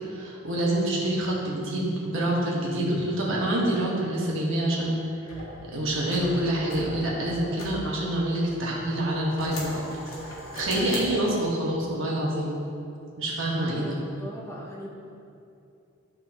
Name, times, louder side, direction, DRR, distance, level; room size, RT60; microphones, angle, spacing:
voice 1, 0.1-5.0 5.7-9.8 10.2-12.5 13.2-14.0, right 1 dB, 65° right, -4 dB, 1.4 m, -26 dB
sound 1, 5.3-8.6 9.0-11.6, left 1 dB, 80° left, 1.5 m, -39 dB
voice 2, 13.7-14.9, equal, 15° left, -3 dB, 0.7 m, -40 dB
11.5 x 4.0 x 2.9 m, 2.7 s
head